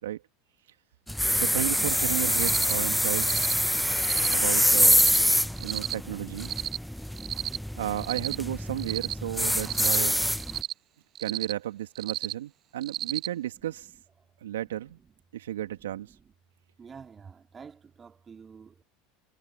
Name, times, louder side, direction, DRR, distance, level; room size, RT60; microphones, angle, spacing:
sound 1, 1.1-10.6, equal, ahead, 1.2 m, -25 dB
voice 1, 1.3-3.5 4.3-5.1 5.6-6.5 7.8-10.3 11.2-13.9 14.4-15.0 15.3-16.1, right 12 dB, 80° right, 2.6 m, -33 dB
Cricket, 2.3-2.7 3.2-3.5 4.0-4.3 4.8-5.2 5.6-5.9 6.4-6.8 7.2-7.6 8.0-8.4 8.8-9.1 9.6-10.0 10.4-10.7 11.1-11.5 11.9-12.3 12.8-13.3, right 12 dB, 45° right, 0.4 m, -33 dB
voice 2, 15.5-16.3 16.8-18.8, right 6 dB, 25° right, 2.7 m, -50 dB
hypercardioid pair, 80°, 0 cm